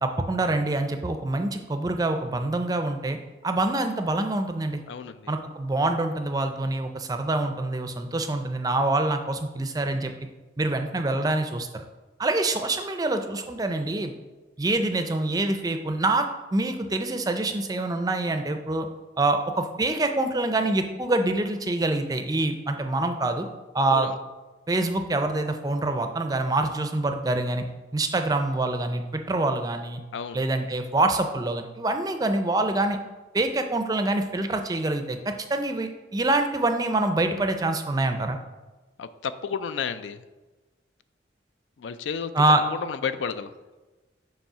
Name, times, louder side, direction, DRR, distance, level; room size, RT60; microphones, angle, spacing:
voice 1, 0.0-3.2 3.4-4.8 5.3-10.1 10.6-11.8 12.2-14.1 14.6-16.3 16.5-18.9 19.2-23.5 23.7-24.1 24.7-27.6 27.9-30.0 30.3-33.0 33.3-38.4 42.3-42.6, right 2 dB, 20° right, 6 dB, 0.4 m, -25 dB
voice 2, 4.9-5.3 23.9-24.1 30.1-30.4 39.0-40.2 41.8-42.3 42.7-42.8 43.0-43.5, left 6 dB, 80° left, 12 dB, 0.4 m, -32 dB
7.2 x 3.1 x 5.5 m, 1.2 s
head